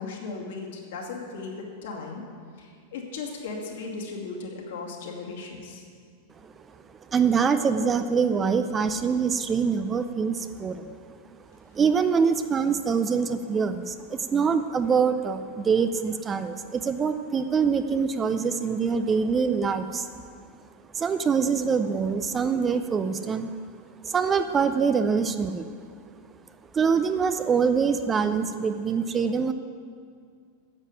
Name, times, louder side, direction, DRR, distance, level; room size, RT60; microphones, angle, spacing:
voice 1, 0.0-2.2 2.6-5.8, left 4 dB, 60° left, 0 dB, 2.3 m, -36 dB
voice 2, 7.1-10.9 11.7-20.1 20.9-23.5 24.0-25.7 26.7-29.5, right 6 dB, 20° right, 9 dB, 0.6 m, -24 dB
9.8 x 8.3 x 9.7 m, 2.2 s
figure-of-eight pair, 90°, 0 cm